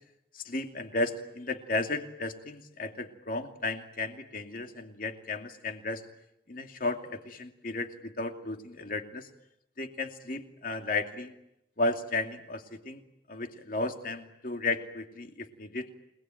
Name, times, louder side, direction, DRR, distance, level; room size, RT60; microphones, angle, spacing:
voice 1, 0.3-6.0 6.5-9.3 9.8-11.3 11.8-13.0 13.3-15.9, left 2 dB, 50° left, 5 dB, 2.6 m, -34 dB
30.0 x 20.0 x 9.1 m, 0.82 s
head